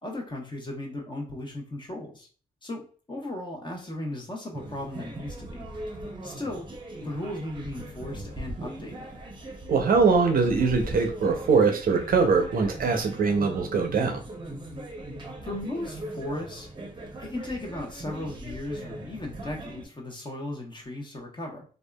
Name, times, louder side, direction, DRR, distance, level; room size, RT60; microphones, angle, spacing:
voice 1, 0.0-2.3 2.6-5.7 6.2-6.7 7.0-9.1 15.4-16.7 17.2-21.6, left 1 dB, 30° left, 0 dB, 1.0 m, -36 dB
sound 1, 4.5-19.9, right 1 dB, 30° right, 0.8 m, -39 dB
voice 2, 9.7-14.1, right 4 dB, 60° right, 4 dB, 0.6 m, -22 dB
2.6 x 2.5 x 2.2 m, 0.39 s
cardioid pair, 55°, 17 cm